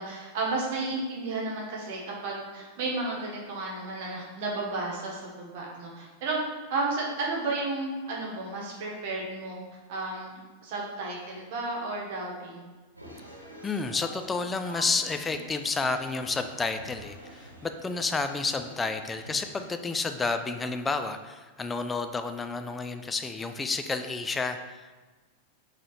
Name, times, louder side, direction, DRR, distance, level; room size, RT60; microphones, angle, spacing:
voice 1, 0.0-6.4 6.7-9.6 9.9-12.7 20.0-20.1, right 3 dB, 50° right, -3 dB, 1.1 m, -33 dB
sound 1, 13.0-19.7, right 1 dB, 85° right, 1.0 m, -46 dB
voice 2, 13.6-25.0, left 4 dB, 15° left, 8 dB, 0.3 m, -30 dB
3.7 x 3.2 x 4.1 m, 1.3 s
figure-of-eight pair, 90°, 0 cm